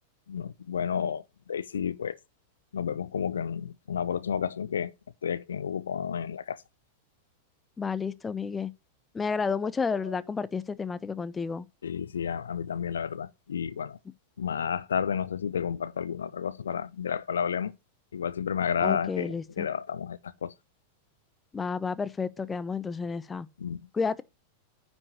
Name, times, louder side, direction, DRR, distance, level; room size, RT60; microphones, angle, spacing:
voice 1, 0.3-1.2 1.5-2.2 2.7-4.9 5.2-6.6 11.8-14.0 14.4-17.7 18.1-20.5 23.6-23.8, left 7 dB, 70° left, 0.5 m, -31 dB
voice 2, 7.8-8.7 9.1-11.7 18.8-19.7 21.5-23.5 23.9-24.2, left 5 dB, 15° left, 0.7 m, -31 dB
9.7 x 5.4 x 6.8 m
figure-of-eight pair, 90°, 0 cm